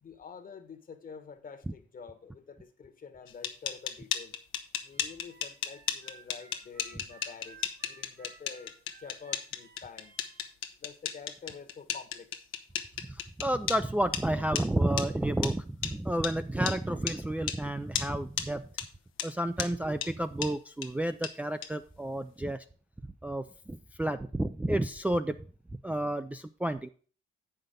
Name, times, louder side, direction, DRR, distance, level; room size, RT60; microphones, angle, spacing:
voice 1, 0.0-4.3 4.8-8.7 9.0-10.1 10.8-12.5, left 6 dB, 45° left, 9 dB, 1.3 m, -48 dB
sound 1, 3.3-13.8 14.1-14.2 14.5-14.6 15.0-15.1 15.4-15.5 15.8-15.9 16.2-16.3 16.7-16.8 17.1-17.2 17.5-17.6 17.9-18.1 18.4-18.5 18.8-18.9 19.2-19.3 19.6-19.7 20.0-20.1 20.4-20.5 20.8-20.9 21.2-21.3 21.6-21.7, left 9 dB, 85° left, 0.9 m, -33 dB
Harmonica, 4.9-10.4, right 6 dB, 80° right, 3.0 m, -56 dB
voice 2, 13.4-18.6 19.2-22.6 23.2-25.3 25.8-26.9, right 1 dB, 5° right, 7 dB, 0.4 m, -31 dB
8.0 x 5.9 x 5.1 m, 0.40 s
cardioid pair, 90°, 20 cm